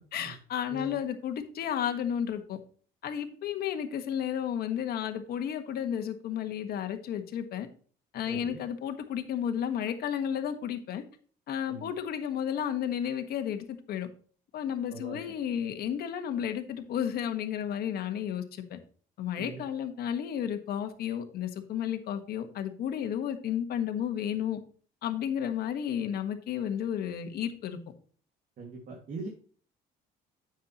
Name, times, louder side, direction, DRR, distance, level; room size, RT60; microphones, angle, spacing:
voice 1, 0.1-2.6 3.0-7.7 8.1-11.0 11.5-14.1 14.5-18.8 19.2-24.6 25.0-27.8, left 9 dB, 65° left, 7 dB, 1.5 m, -32 dB
voice 2, 8.3-8.6 11.7-11.8 14.9-15.3 19.4-19.6 28.6-29.3, right 3 dB, 55° right, 1 dB, 2.1 m, -41 dB
9.7 x 7.4 x 3.0 m, 0.43 s
cardioid pair, 110°, 17 cm